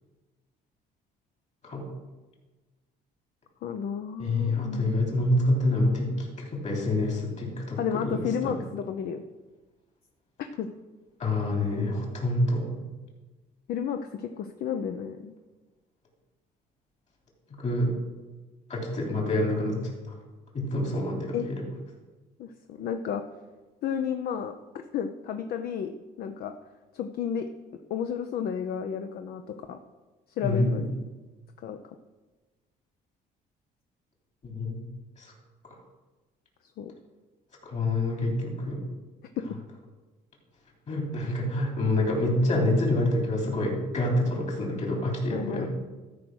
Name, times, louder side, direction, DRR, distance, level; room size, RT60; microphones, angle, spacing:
voice 1, 3.6-5.1 7.8-9.2 10.6-10.7 13.7-15.3 21.3-21.5 22.4-23.2 23.8-24.5 24.9-25.9 26.2-26.5 26.9-27.5 27.9-29.8 30.4-30.9 31.6-31.8 36.8-36.9 39.4-39.5 45.3-45.7, left 7 dB, 65° left, 7 dB, 0.7 m, -32 dB
voice 2, 4.2-8.5 11.2-12.7 17.6-17.9 18.7-20.2 20.5-21.6 30.4-30.8 34.4-34.8 35.2-35.3 37.6-38.8 40.9-45.7, left 1 dB, 40° left, 0 dB, 3.3 m, -27 dB
13.0 x 4.9 x 6.3 m, 1.2 s
cardioid pair, 110°, 17 cm